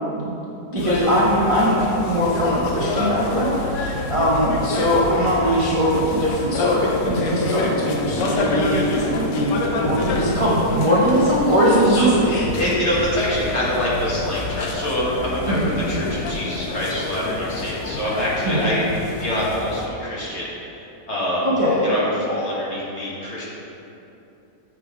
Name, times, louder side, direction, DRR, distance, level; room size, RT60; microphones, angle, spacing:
voice 1, 0.7-12.4 15.5-15.7 18.4-18.6 21.4-21.9, equal, 35° right, -8 dB, 0.5 m, -20 dB
sound 1, 0.8-19.9, left 3 dB, 85° left, 1.3 m, -28 dB
voice 2, 12.5-20.5 21.1-21.5 21.8-23.4, left 1 dB, 40° left, -7 dB, 1.5 m, -25 dB
7.7 x 3.6 x 4.8 m, 2.9 s
omnidirectional pair, 1.9 m